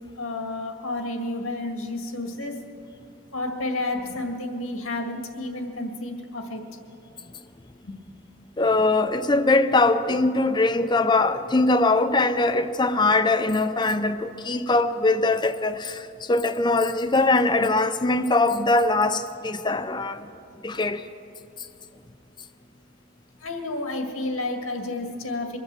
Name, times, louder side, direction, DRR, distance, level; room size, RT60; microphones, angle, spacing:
voice 1, 0.1-2.6 3.3-6.6 7.8-8.0 23.4-25.6, left 2 dB, 85° left, 1.9 m, -31 dB
voice 2, 8.6-20.3 20.6-21.0, left 2 dB, 20° left, 0.5 m, -22 dB
23.0 x 8.0 x 7.5 m
head